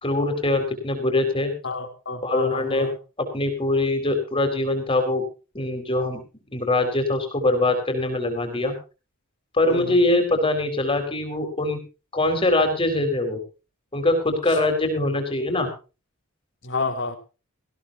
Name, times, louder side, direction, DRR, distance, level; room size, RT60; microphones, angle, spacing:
voice 1, 0.0-1.5 2.2-2.9 3.2-5.2 5.5-6.2 6.5-8.7 9.5-11.8 12.1-13.4 13.9-15.7, left 2 dB, 25° left, 5 dB, 4.3 m, -23 dB
voice 2, 1.6-3.0 9.7-10.1 14.5-14.6 16.6-17.2, left 3 dB, 55° left, 6 dB, 3.2 m, -30 dB
18.5 x 16.0 x 2.8 m, 0.33 s
head